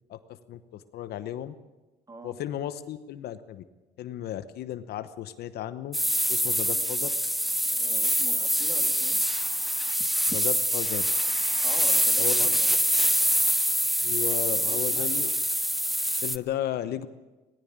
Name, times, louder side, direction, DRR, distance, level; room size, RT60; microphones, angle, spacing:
voice 1, 0.5-1.5 2.2-3.6 4.0-6.0 6.3-7.1 10.3-11.1 12.2-12.6 14.0-15.3 16.2-17.1, left 11 dB, 70° left, 12 dB, 1.0 m, -34 dB
voice 2, 2.1-2.4 6.7-6.8 7.7-9.2 11.6-12.7 14.6-15.3, right 3 dB, 20° right, 5 dB, 2.6 m, -44 dB
sound 1, 5.9-16.4, equal, ahead, 0.6 m, -25 dB
18.5 x 16.0 x 8.9 m, 1.1 s
cardioid pair, 110°, 17 cm